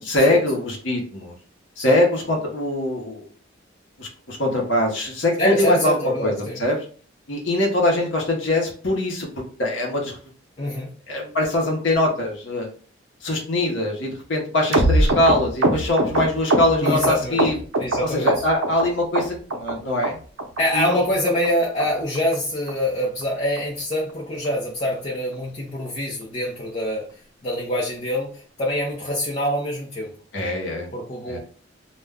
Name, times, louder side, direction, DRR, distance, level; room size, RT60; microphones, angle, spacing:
voice 1, 0.0-1.3 1.8-3.3 4.0-6.3 6.6-6.8 7.3-9.3 9.6-10.1 11.1-12.7 13.2-17.6 18.0-20.2 20.7-21.0 30.3-30.9 31.3-31.4, left 1 dB, 70° left, -1 dB, 0.8 m, -22 dB
voice 2, 5.4-6.6 10.6-10.9 16.8-17.4 17.8-18.4 20.6-27.1 27.4-30.1 30.9-31.4, equal, 35° left, -4 dB, 0.6 m, -25 dB
sound 1, 14.7-18.0 18.3-18.9 19.2-19.7 20.0-20.1 20.4-20.6 20.9-21.0 21.3-21.5 21.8-21.9 22.2-22.4 22.7-22.8 23.0-23.2 23.6-23.7 23.9-24.1 24.5-24.6, right 1 dB, 85° right, 0.6 m, -21 dB
2.3 x 2.1 x 3.5 m, 0.41 s
head